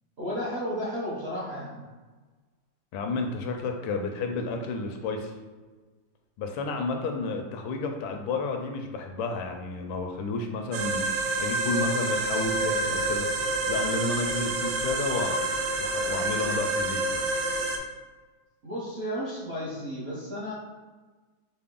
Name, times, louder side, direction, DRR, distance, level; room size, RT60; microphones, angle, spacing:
voice 1, 0.2-1.9 18.6-20.5, equal, 50° right, -8 dB, 0.7 m, -33 dB
voice 2, 2.9-5.3 6.4-13.3 13.7-15.4 15.8-17.2, left 3 dB, 80° left, 4 dB, 1.3 m, -31 dB
sound 1, 10.7-17.8, right 2 dB, 80° right, 1.3 m, -28 dB
5.6 x 2.1 x 3.6 m, 1.3 s
omnidirectional pair, 2.1 m